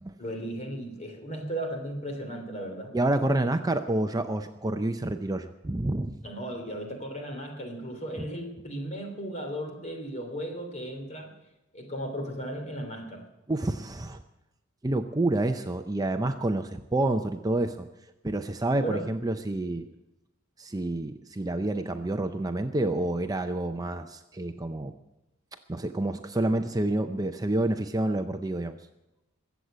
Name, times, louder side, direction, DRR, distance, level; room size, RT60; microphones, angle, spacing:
voice 1, 0.2-2.9 6.2-11.3 11.7-13.2 18.8-19.1 19.7-19.8, right 1 dB, 35° left, 4 dB, 3.3 m, -36 dB
voice 2, 2.9-6.2 8.2-8.3 13.5-14.2 14.8-17.9 18.2-19.8 20.6-24.9 25.7-28.8, right 2 dB, 20° right, 7 dB, 0.6 m, -28 dB
22.0 x 8.2 x 7.6 m, 0.94 s
head